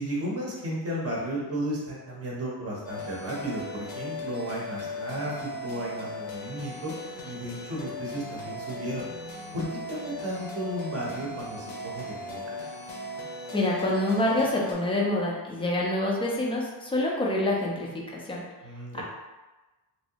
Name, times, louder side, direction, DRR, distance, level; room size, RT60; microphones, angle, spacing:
voice 1, 0.0-6.9 7.2-9.1 9.5-12.5 18.6-19.0, right 1 dB, 30° right, -4 dB, 0.7 m, -34 dB
sound 1, 2.8-14.7, left 2 dB, 70° left, 0.8 m, -38 dB
voice 2, 13.5-18.4 18.9-19.0, left 1 dB, 15° left, -3 dB, 0.3 m, -27 dB
3.1 x 2.7 x 2.8 m, 1.1 s
cardioid pair, 165°, 44 cm